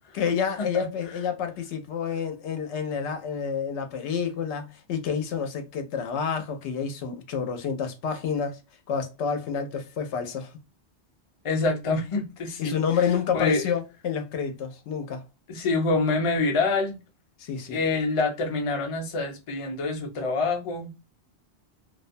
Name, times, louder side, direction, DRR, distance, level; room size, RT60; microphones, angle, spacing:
voice 1, 0.1-8.6 8.9-10.5 12.6-15.2 17.4-17.8, left 7 dB, 85° left, 0.9 m, -29 dB
voice 2, 11.4-12.7 13.3-13.7 15.5-17.0 17.7-20.9, left 3 dB, 40° left, 0.5 m, -26 dB
2.4 x 2.1 x 2.5 m
omnidirectional pair, 1.1 m